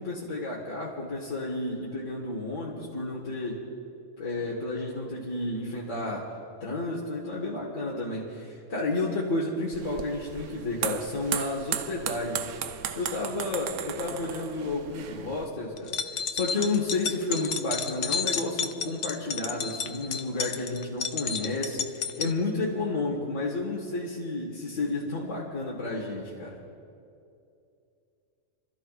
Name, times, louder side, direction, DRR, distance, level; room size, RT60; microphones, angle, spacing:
voice 1, 0.0-3.7 4.2-6.3 6.6-12.5 12.9-26.6, left 2 dB, 90° left, -5 dB, 1.9 m, -31 dB
sound 1, 9.7-15.5, right 9 dB, 75° right, 0.9 m, -36 dB
sound 2, 15.8-22.3, left 6 dB, 70° left, 0.9 m, -31 dB
29.5 x 13.0 x 2.4 m, 2.5 s
omnidirectional pair, 1.3 m